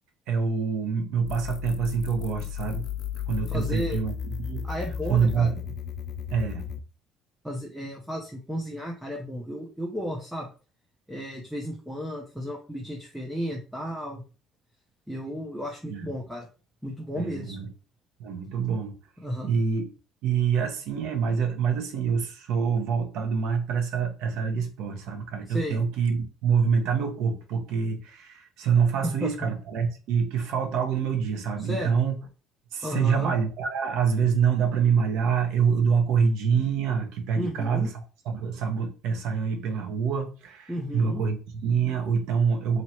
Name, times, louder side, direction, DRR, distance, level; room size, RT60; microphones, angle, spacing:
voice 1, 0.3-2.8 3.3-4.7 5.1-5.6 6.3-6.6 15.9-16.1 17.1-17.7 18.2-18.9 19.4-19.9 20.2-32.2 32.7-37.9 38.2-42.8, right 6 dB, 70° right, 0.9 m, -26 dB
sound 1, 1.3-6.8, left 9 dB, 50° left, 0.3 m, -34 dB
voice 2, 3.5-4.0 4.6-5.5 7.4-10.5 11.1-14.2 15.1-16.5 16.8-17.6 19.2-19.5 25.5-25.8 29.0-29.3 31.6-31.9 32.8-33.3 37.4-37.9 40.7-41.2, equal, ahead, 0.6 m, -33 dB
3.0 x 2.9 x 4.3 m
cardioid pair, 160°, 0 cm